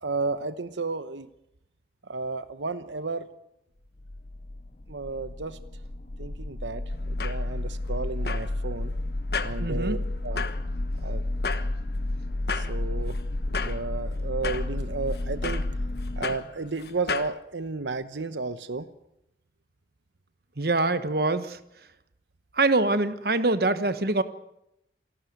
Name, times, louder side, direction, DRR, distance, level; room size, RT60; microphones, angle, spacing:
voice 1, 0.0-1.3 2.1-3.3 4.9-5.6 6.2-8.9 9.4-10.4 11.0-11.2 12.5-13.2 13.5-15.7 16.2-18.9, right 3 dB, 85° right, 12 dB, 1.0 m, -33 dB
sound 1, 4.0-16.3, left 1 dB, 40° left, 0.8 m, -31 dB
sound 2, 6.9-17.4, left 5 dB, 60° left, 1.3 m, -37 dB
voice 2, 9.6-10.0 20.6-21.6 22.5-24.2, right 2 dB, 55° right, 11 dB, 1.3 m, -24 dB
28.0 x 12.5 x 9.4 m, 0.82 s
head